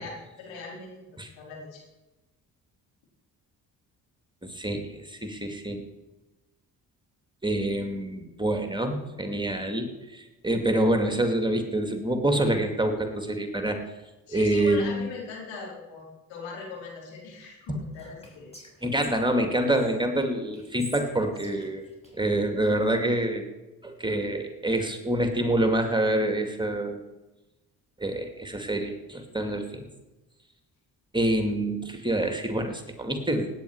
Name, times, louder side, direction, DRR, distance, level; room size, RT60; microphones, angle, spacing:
voice 1, 0.0-1.0 1.3-1.8 14.3-18.5 21.5-21.6, left 4 dB, 70° left, -3 dB, 4.9 m, -40 dB
voice 2, 4.4-5.8 7.4-13.8 14.3-15.1 17.7-17.8 18.8-21.8 22.1-23.4 23.8-27.0 28.0-29.8 31.1-33.6, right 1 dB, 10° right, 4 dB, 2.5 m, -26 dB
Whispering, 17.9-19.9 20.5-22.7, equal, 15° left, 5.9 m, -46 dB
17.5 x 9.5 x 4.8 m, 1.1 s
hypercardioid pair, 45°, 47 cm